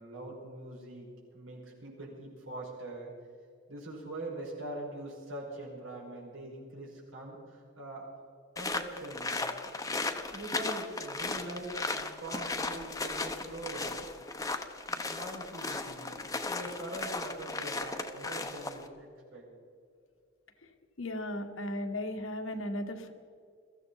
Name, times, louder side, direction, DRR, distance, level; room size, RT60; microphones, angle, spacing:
voice 1, 0.0-3.1 3.7-8.1 8.6-14.0 14.9-19.5, right 1 dB, 85° right, -2 dB, 5.2 m, -43 dB
sound 1, 8.6-18.9, left 3 dB, 15° left, 0.9 m, -36 dB
voice 2, 21.0-23.1, left 1 dB, 85° left, 5 dB, 1.6 m, -36 dB
23.0 x 14.5 x 4.2 m, 2.3 s
head